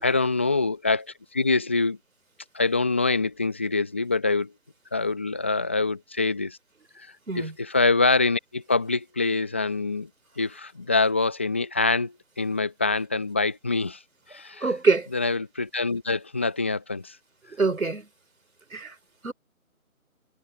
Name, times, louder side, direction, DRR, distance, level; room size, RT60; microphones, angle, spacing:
voice 1, 0.0-2.0 2.5-4.5 4.9-6.6 6.9-7.1 7.3-10.1 10.4-14.0 14.3-14.7 15.1-17.2, left 3 dB, 10° left, 0.8 m, -25 dB
voice 2, 14.6-15.1 17.6-18.0 18.7-18.9 19.2-19.3, right 4 dB, 70° right, 4.3 m, -24 dB
figure-of-eight pair, 155°, 43 cm